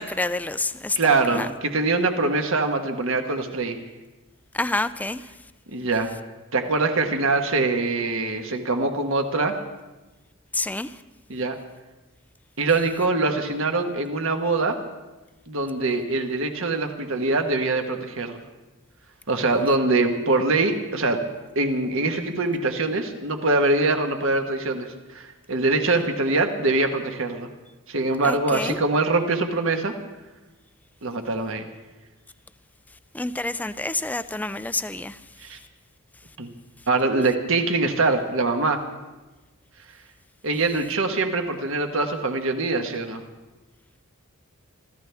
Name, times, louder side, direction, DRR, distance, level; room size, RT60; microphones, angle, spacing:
voice 1, 0.0-1.5 4.5-5.2 10.5-10.9 28.2-28.8 33.1-35.2, left 2 dB, 5° left, 0.4 m, -28 dB
voice 2, 0.9-3.8 5.7-6.1 6.5-9.5 11.3-11.6 12.6-14.8 15.5-18.4 19.3-21.2 21.5-27.5 27.9-29.9 31.0-31.6 35.4-35.6 36.4-36.5 36.9-38.8 40.4-43.2, right 3 dB, 65° right, 1.4 m, -23 dB
26.0 x 14.5 x 3.5 m
head